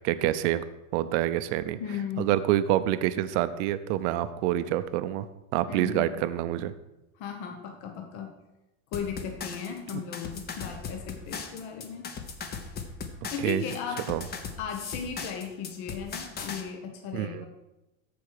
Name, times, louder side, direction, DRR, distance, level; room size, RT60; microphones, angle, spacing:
voice 1, 0.0-0.6 0.9-1.8 2.2-5.3 5.5-6.7 9.9-10.0 13.4-13.6 14.1-14.2 17.1-17.5, right 13 dB, 60° right, 12 dB, 0.7 m, -27 dB
voice 2, 1.7-2.4 5.7-6.2 7.1-8.4 8.9-12.1 13.3-14.1 14.6-17.5, left 7 dB, 55° left, 3 dB, 1.3 m, -36 dB
sound 1, 8.9-16.6, left 5 dB, 25° left, 0.8 m, -38 dB
14.0 x 4.7 x 4.9 m, 0.98 s
supercardioid pair, 150°, 40 cm